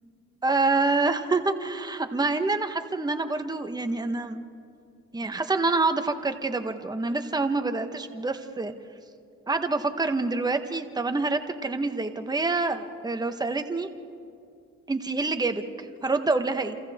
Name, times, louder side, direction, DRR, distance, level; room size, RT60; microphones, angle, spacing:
voice 1, 0.4-4.4 5.1-8.7 9.5-13.9 14.9-16.8, right 3 dB, 15° right, 7 dB, 1.3 m, -27 dB
29.0 x 27.5 x 3.7 m, 2.4 s
cardioid pair, 90°, 30 cm